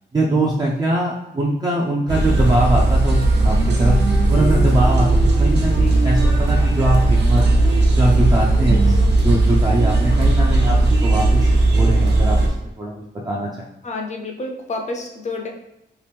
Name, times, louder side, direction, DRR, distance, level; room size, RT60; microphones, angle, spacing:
voice 1, 0.1-4.0 4.3-7.4 8.0-9.0 9.2-13.7, right 1 dB, 20° right, -4 dB, 0.4 m, -22 dB
sound 1, 2.1-12.5, right 2 dB, 70° right, 0.8 m, -16 dB
voice 2, 13.8-15.5, left 2 dB, 40° left, 1 dB, 0.5 m, -29 dB
3.0 x 2.9 x 3.3 m, 0.84 s
wide cardioid pair, 150°, 19 cm